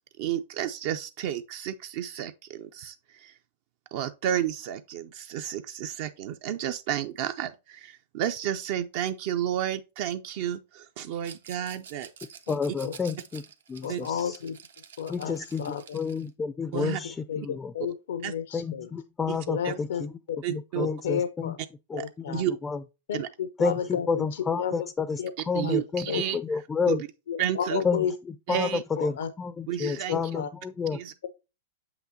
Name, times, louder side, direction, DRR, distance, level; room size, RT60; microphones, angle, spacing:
voice 1, 0.2-3.3 3.9-12.1 13.9-14.0 16.7-17.0 18.2-18.3 19.3-19.4 19.6-19.7 20.4-20.9 22.0-22.1 22.3-22.5 23.1-23.3 25.5-27.1 27.4-27.8 28.5-28.8 29.7-30.2 30.9-31.1, right 10 dB, 55° right, 0.4 m, -31 dB
Rattle, 11.2-16.3, right 7 dB, 90° right, 1.0 m, -49 dB
voice 2, 12.5-13.4 13.7-14.4 15.1-17.7 18.5-20.1 20.5-21.5 21.9-22.8 23.6-26.1 26.3-27.0 27.8-28.0 28.5-31.0, left 5 dB, 15° left, 0.3 m, -30 dB
voice 3, 13.8-14.6 15.0-16.0 16.8-18.9 19.5-20.4 20.8-21.6 21.9-22.4 23.1-24.9 25.2-25.3 25.6-25.8 26.1-26.2 27.3-28.1 29.0-29.3 29.8-30.5, left 8 dB, 80° left, 0.5 m, -32 dB
7.0 x 5.8 x 2.7 m
hypercardioid pair, 125°, 0 cm